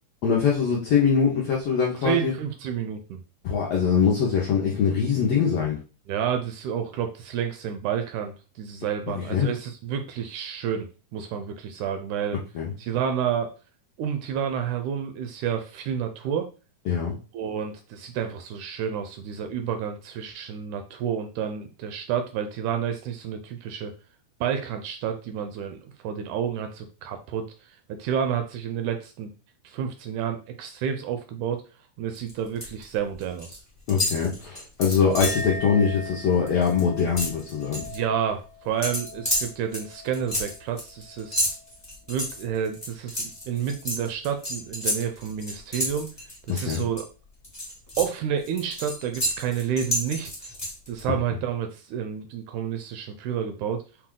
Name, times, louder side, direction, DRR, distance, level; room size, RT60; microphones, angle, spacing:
voice 1, 0.2-2.3 3.4-5.8 9.1-9.5 12.5-12.7 16.9-17.1 33.9-37.8 46.5-46.8, left 6 dB, 75° left, -3 dB, 1.4 m, -23 dB
voice 2, 2.0-3.2 6.1-12.4 12.8-13.5 14.0-16.5 17.3-23.9 24.4-29.3 29.6-31.6 32.0-33.6 37.8-41.6 42.1-46.1 46.5-47.1 48.0-50.6 50.9-53.8, right 8 dB, 80° right, 6 dB, 1.8 m, -30 dB
sound 1, 32.1-32.8 33.1-33.6 33.9-35.5 35.9-36.1 36.3-38.0 38.8-47.0 47.4-51.0, equal, 15° left, 0.5 m, -31 dB
Chink clink, 35.2-41.8 42.1-42.7, left 3 dB, 55° left, 1.8 m, -40 dB
5.8 x 2.3 x 3.6 m, 0.34 s
omnidirectional pair, 3.8 m